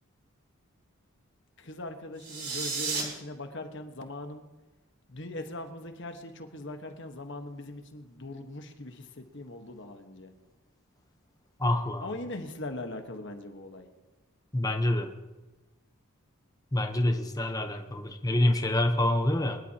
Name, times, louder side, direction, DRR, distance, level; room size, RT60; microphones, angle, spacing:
voice 1, 1.6-4.4 5.1-10.3 12.0-13.9, left 2 dB, 55° left, 5 dB, 1.3 m, -40 dB
sound 1, 2.2-3.0, right 4 dB, 40° right, 3.9 m, -32 dB
voice 2, 11.6-12.0 14.5-15.1 16.7-19.6, left 1 dB, 15° left, 5 dB, 0.9 m, -26 dB
23.5 x 12.0 x 2.9 m, 1.1 s
head